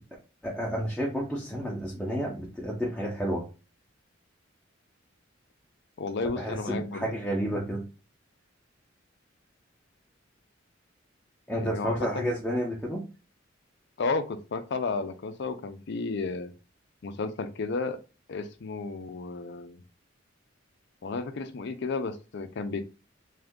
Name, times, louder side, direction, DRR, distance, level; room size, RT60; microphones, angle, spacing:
voice 1, 0.4-3.5 6.4-7.8 11.5-13.0, equal, 5° left, -4 dB, 0.6 m, -30 dB
voice 2, 6.0-7.1 11.6-12.3 14.0-16.5 17.0-18.0 18.3-19.8 21.0-22.9, left 3 dB, 60° left, 9 dB, 0.5 m, -32 dB
2.6 x 2.4 x 3.5 m, 0.32 s
head